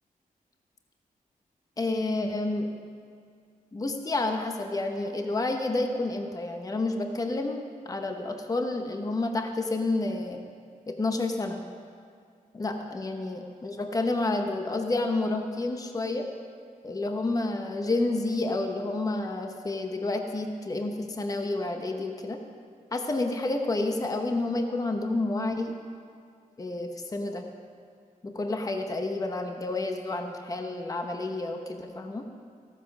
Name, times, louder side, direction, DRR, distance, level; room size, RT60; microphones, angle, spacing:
voice 1, 1.8-2.7 3.7-10.4 10.9-11.6 12.5-16.3 16.8-22.4 22.9-25.8 26.6-27.4 28.2-32.2, left 2 dB, 25° left, 4 dB, 0.8 m, -29 dB
14.5 x 9.1 x 6.0 m, 2.2 s
wide cardioid pair, 115°, 15 cm